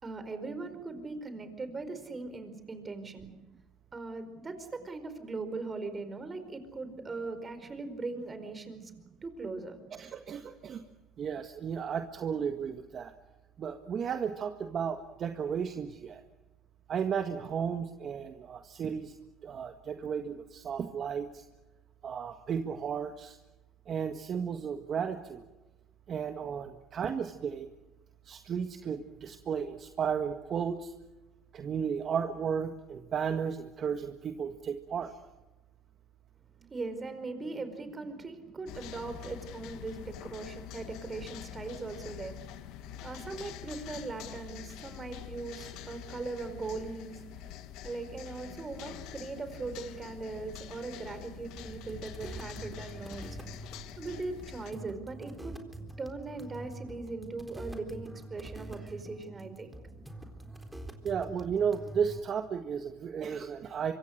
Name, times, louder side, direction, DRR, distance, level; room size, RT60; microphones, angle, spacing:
voice 1, 0.0-3.3 3.9-8.9 9.2-9.8 36.7-42.4 43.0-47.6 47.8-53.3 53.6-53.7 54.0-55.6 56.0-59.8, right 3 dB, 25° right, 9 dB, 4.8 m, -40 dB
voice 2, 9.9-10.8 11.2-13.1 13.6-16.2 16.9-19.1 19.4-21.4 22.0-23.4 23.9-25.4 26.1-27.7 28.3-30.9 31.5-35.1 61.0-63.9, right 7 dB, 40° right, 6 dB, 1.7 m, -34 dB
sound 1, 38.7-54.7, left 11 dB, 75° left, 1.8 m, -46 dB
sound 2, 51.6-62.2, right 1 dB, 5° right, 3.9 m, -46 dB
26.0 x 24.0 x 6.6 m, 1.1 s
supercardioid pair, 110°, 0 cm